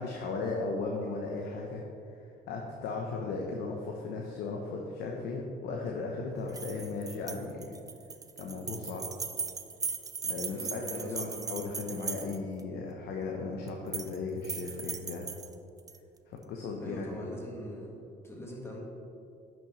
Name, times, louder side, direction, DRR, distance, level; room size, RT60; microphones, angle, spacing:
voice 1, 0.0-1.8 2.2-7.8 8.4-9.1 10.2-15.3 16.3-17.2, left 3 dB, 75° left, 0 dB, 0.9 m, -36 dB
sound 1, 6.5-12.6 13.7-14.2 14.4-16.0, right 5 dB, 20° right, 0.4 m, -38 dB
voice 2, 10.5-11.4 16.8-18.8, equal, 15° left, -1 dB, 1.6 m, -42 dB
10.0 x 6.2 x 3.2 m, 2.6 s
cardioid pair, 110°, 17 cm